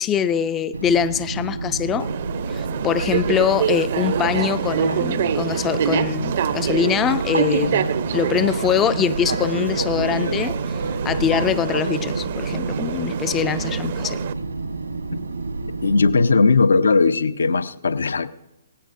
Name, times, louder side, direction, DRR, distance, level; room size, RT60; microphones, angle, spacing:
voice 1, 0.0-2.1 2.5-7.9 8.1-10.8 11.0-14.2, left 8 dB, 20° left, 14 dB, 0.4 m, -23 dB
Fixed-wing aircraft airplane, 0.7-16.1, right 3 dB, 80° right, 1.3 m, -29 dB
sound 1, 2.0-14.3, right 8 dB, 50° right, 0.6 m, -26 dB
voice 2, 15.8-18.3, left 4 dB, 70° left, 15 dB, 0.7 m, -18 dB
18.0 x 15.5 x 2.6 m, 0.91 s
figure-of-eight pair, 125°, 0 cm